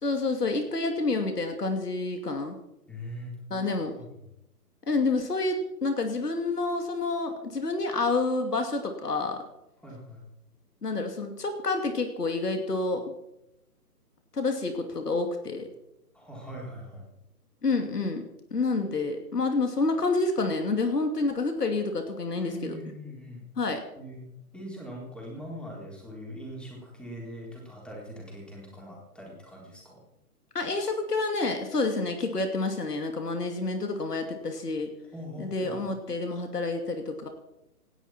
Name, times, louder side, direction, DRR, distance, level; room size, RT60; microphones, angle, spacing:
voice 1, 0.0-2.6 3.5-4.0 4.9-9.4 10.8-13.1 14.3-15.7 17.6-22.8 23.6-23.8 30.5-34.9 35.4-37.3, left 3 dB, 75° left, 5 dB, 2.9 m, -28 dB
voice 2, 2.9-4.2 9.8-10.3 16.1-17.0 22.4-23.4 24.0-24.3 24.5-30.0 35.1-35.7, equal, ahead, -2 dB, 3.9 m, -42 dB
27.5 x 10.5 x 4.5 m, 0.86 s
figure-of-eight pair, 140°, 47 cm